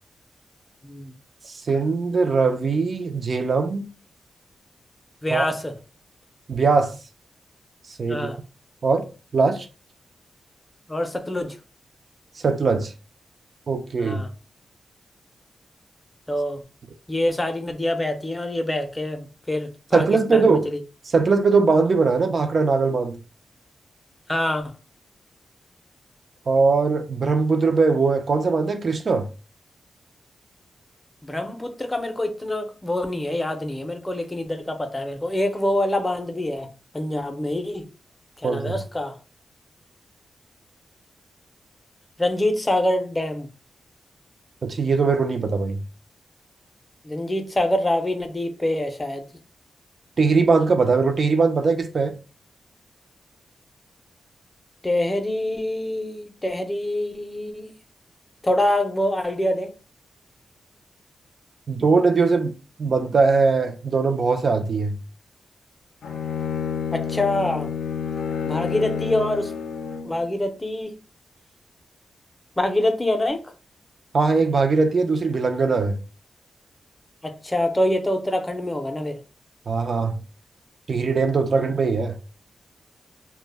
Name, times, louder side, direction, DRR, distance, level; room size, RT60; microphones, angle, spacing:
voice 1, 1.4-3.8 5.3-5.5 6.5-7.0 8.0-8.3 8.8-9.1 9.3-9.7 12.4-12.9 13.7-14.2 19.9-20.7 21.1-23.2 26.5-29.3 38.4-38.8 44.6-45.8 50.2-52.1 61.7-62.5 62.8-65.0 74.1-76.0 79.7-80.1 80.9-82.2, right 4 dB, 55° right, 0.4 m, -20 dB
voice 2, 5.2-5.7 8.1-8.4 10.9-11.6 14.0-14.3 16.3-16.6 17.1-20.0 20.3-20.8 24.3-24.7 31.2-37.9 38.4-39.2 42.2-43.5 47.0-49.2 54.8-57.7 58.4-59.7 66.9-67.7 68.4-69.5 70.0-71.0 72.6-73.4 77.2-79.2 81.5-81.7, left 1 dB, 20° left, 0.5 m, -25 dB
Bowed string instrument, 66.0-70.2, left 7 dB, 90° left, 0.4 m, -29 dB
2.1 x 2.0 x 3.2 m
cardioid pair, 80°, 0 cm